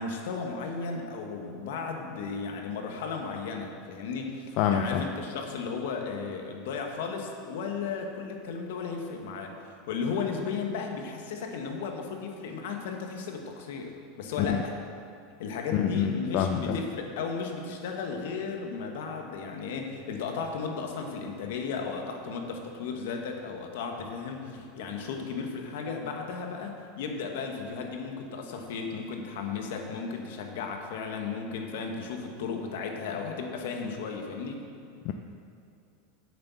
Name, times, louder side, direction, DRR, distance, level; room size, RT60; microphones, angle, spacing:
voice 1, 0.0-14.7 15.4-34.6, left 5 dB, 75° left, 3 dB, 1.5 m, -35 dB
voice 2, 4.6-5.0 14.4-14.6 15.7-16.8 35.0-35.1, left 9 dB, 55° left, 5 dB, 0.5 m, -26 dB
8.6 x 6.8 x 7.0 m, 2.5 s
supercardioid pair, 125°, 0 cm